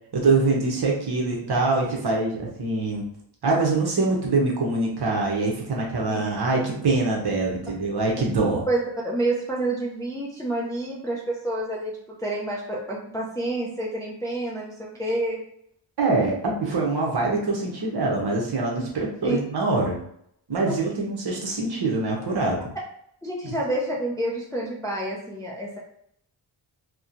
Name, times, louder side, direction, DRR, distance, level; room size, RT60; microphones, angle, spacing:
voice 1, 0.1-3.0 3.4-8.6 16.0-20.0 20.5-22.6, right 3 dB, 55° right, -1 dB, 0.8 m, -24 dB
voice 2, 8.7-11.9 12.2-15.4 19.2-19.4 20.7-20.8 23.2-25.8, right 1 dB, 10° left, -4 dB, 0.3 m, -28 dB
2.9 x 2.2 x 2.5 m, 0.70 s
wide cardioid pair, 130°, 49 cm